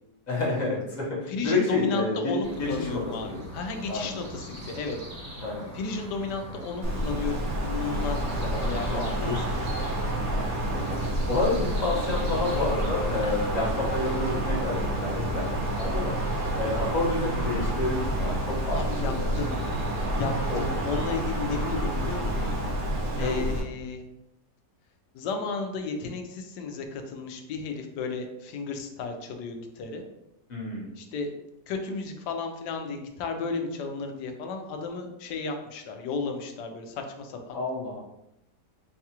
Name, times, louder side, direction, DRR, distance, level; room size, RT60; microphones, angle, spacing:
voice 1, 0.3-3.4 3.9-4.1 5.4-5.7 8.5-9.5 10.4-15.5 15.8-16.1 16.5-19.3 20.5-20.6 20.9-21.0 23.2-23.6 30.5-30.9 37.5-38.0, left 2 dB, 35° left, -4 dB, 0.7 m, -29 dB
voice 2, 1.3-5.0 5.7-9.3 13.2-13.3 18.7-19.6 20.1-22.6 23.1-24.0 25.1-30.0 31.0-31.3 31.7-37.6, left 4 dB, 80° left, 5 dB, 1.2 m, -33 dB
sound 1, 2.4-20.7, equal, 30° right, 0.7 m, -42 dB
Wind, 6.8-23.6, right 1 dB, 85° right, 0.3 m, -29 dB
4.7 x 2.3 x 2.8 m, 0.87 s
omnidirectional pair, 1.9 m